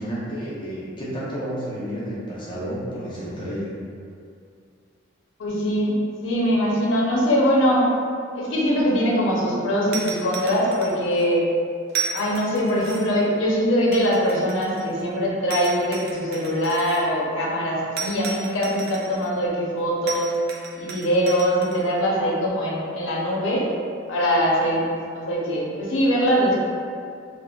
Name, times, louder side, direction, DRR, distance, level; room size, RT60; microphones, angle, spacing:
voice 1, 0.0-3.7, equal, 25° left, -8 dB, 0.7 m, -31 dB
voice 2, 5.4-5.9 6.2-7.9 8.3-11.4 12.1-20.3 20.8-23.7 24.1-24.8 25.1-26.6, equal, 85° left, -4 dB, 0.6 m, -22 dB
sound 1, 9.9-11.2 11.9-13.2 13.9-15.0 15.5-17.0 18.0-19.3 20.1-21.8, right 6 dB, 55° right, 0.3 m, -34 dB
3.4 x 2.1 x 2.2 m, 2.3 s
head